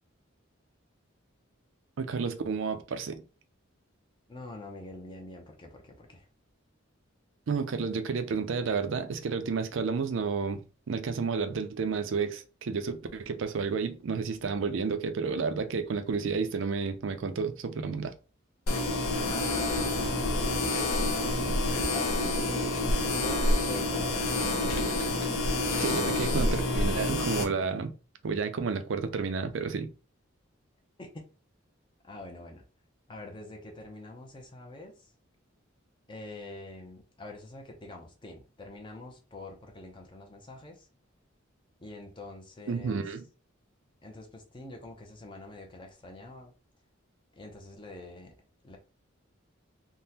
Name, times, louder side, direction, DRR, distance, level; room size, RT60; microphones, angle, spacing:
voice 1, 2.0-3.2 7.5-10.6 10.9-18.1 25.8-27.9 28.2-29.9 42.7-43.2, right 5 dB, 65° right, 0.4 m, -31 dB
voice 2, 4.3-6.3 19.2-20.3 21.0-22.2 22.8-24.9 31.0-31.1 32.0-32.6 33.1-35.1 36.1-40.9 41.8-43.0 44.0-46.5 47.3-48.3 48.6-48.8, left 2 dB, 25° left, 0.5 m, -45 dB
sound 1, 18.7-27.4, left 2 dB, 80° left, 0.8 m, -28 dB
3.5 x 2.1 x 2.8 m
head